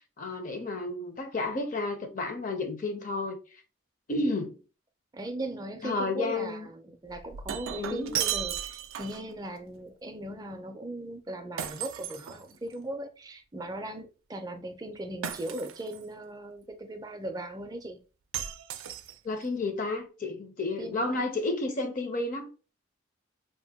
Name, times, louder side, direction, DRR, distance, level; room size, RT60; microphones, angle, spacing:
voice 1, 0.2-3.4 4.1-4.6 5.8-6.7 7.8-8.1 19.2-22.5, left 2 dB, 40° left, 0.6 m, -31 dB
voice 2, 5.1-18.0 20.8-21.3, right 1 dB, 20° right, 0.4 m, -38 dB
Shatter, 7.1-9.3 11.6-12.9 15.2-16.0 18.3-19.4, right 10 dB, 90° right, 0.4 m, -35 dB
2.7 x 2.1 x 3.4 m
head